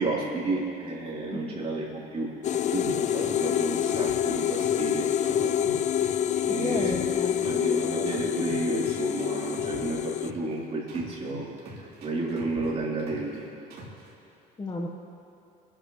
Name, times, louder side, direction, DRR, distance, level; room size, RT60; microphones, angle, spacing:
voice 1, 0.0-5.7 6.4-7.0 7.2-11.5 11.8-13.5, right 2 dB, 40° right, -5 dB, 3.8 m, -32 dB
sound 1, 2.4-10.3, left 10 dB, 45° left, 0.4 m, -27 dB
sound 2, 2.8-4.9 5.2-7.7 8.1-10.5 10.9-13.4 13.7-14.1, right 2 dB, 70° right, 3.5 m, -44 dB
voice 2, 6.6-7.5 14.6-14.9, left 3 dB, 25° left, 0 dB, 1.5 m, -33 dB
28.0 x 11.0 x 3.3 m, 2.9 s
cardioid pair, 110°, 17 cm